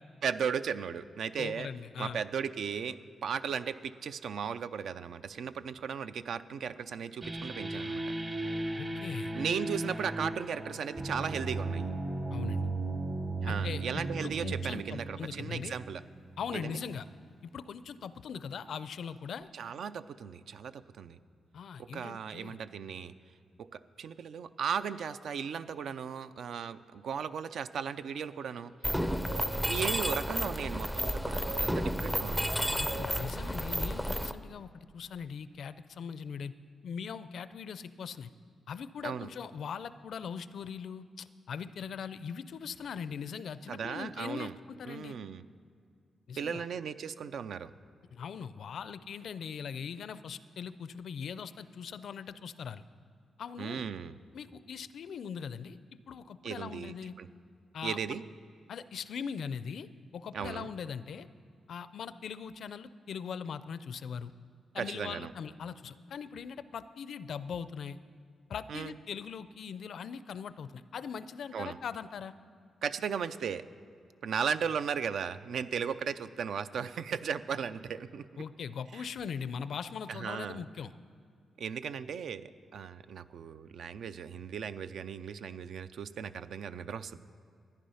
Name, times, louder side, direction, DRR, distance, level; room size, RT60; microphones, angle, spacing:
voice 1, 0.2-1.7 2.0-8.1 9.3-11.9 13.4-16.0 16.5-16.7 19.5-21.2 21.8-23.1 23.6-28.7 29.4-32.5 39.0-39.3 43.7-44.5 44.9-45.5 46.4-47.7 53.6-54.2 56.4-57.3 57.8-58.2 60.3-60.7 64.8-65.3 68.7-68.9 71.5-71.8 72.8-73.7 74.2-78.3 78.9-79.0 80.1-80.6 81.6-87.2, right 7 dB, 70° right, 12 dB, 0.4 m, -36 dB
voice 2, 1.4-2.2 8.8-9.3 12.3-12.6 13.5-15.8 16.4-17.1 17.5-19.5 21.5-22.6 32.7-36.5 36.8-38.3 38.7-45.2 46.3-46.6 48.1-52.8 53.4-53.8 54.3-55.8 56.1-57.2 57.7-58.2 58.7-59.9 60.1-61.3 61.7-64.3 64.7-68.0 68.5-72.3 78.4-80.9, left 7 dB, 65° left, 14 dB, 0.4 m, -40 dB
sound 1, 7.2-16.6, right 2 dB, 25° right, 0.8 m, -36 dB
Mechanisms, 28.8-34.3, equal, 5° right, 0.5 m, -32 dB
sound 2, 28.9-29.5 31.0-31.6 32.5-33.1, right 3 dB, 45° right, 3.7 m, -43 dB
13.5 x 10.0 x 5.6 m, 2.3 s
cardioid pair, 125°, 0 cm